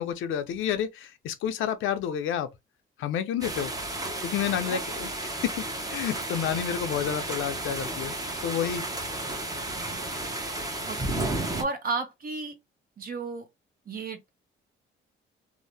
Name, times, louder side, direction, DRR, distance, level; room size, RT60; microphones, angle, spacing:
voice 1, 0.0-2.5 3.0-3.7 4.2-5.5 5.9-8.1 8.4-8.8, left 9 dB, 85° left, 0.6 m, -29 dB
sound 1, 3.4-11.6, right 2 dB, 20° right, 0.8 m, -33 dB
voice 2, 11.6-12.5 13.0-13.5 13.9-14.3, right 3 dB, 45° right, 1.0 m, -33 dB
2.7 x 2.0 x 3.3 m
cardioid pair, 90°, 20 cm